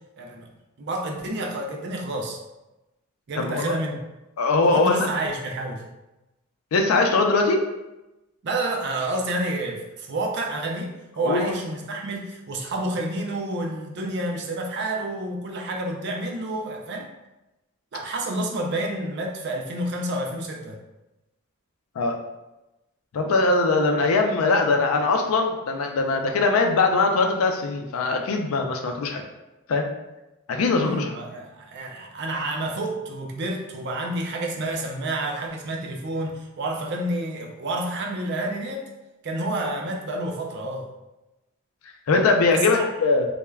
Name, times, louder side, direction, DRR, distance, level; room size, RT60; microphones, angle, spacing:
voice 1, 0.2-0.5 0.8-2.4 3.3-4.0 4.6-5.8 8.4-17.1 17.9-20.8 30.8-38.9 39.2-40.9 42.5-42.9, right 1 dB, 55° right, 1 dB, 0.4 m, -29 dB
voice 2, 3.4-3.7 4.4-5.1 6.7-7.6 11.2-11.5 22.0-22.2 23.1-29.2 29.7-29.9 30.5-31.1 42.1-43.3, left 3 dB, 80° left, 3 dB, 0.4 m, -21 dB
3.2 x 2.1 x 2.2 m, 0.99 s
head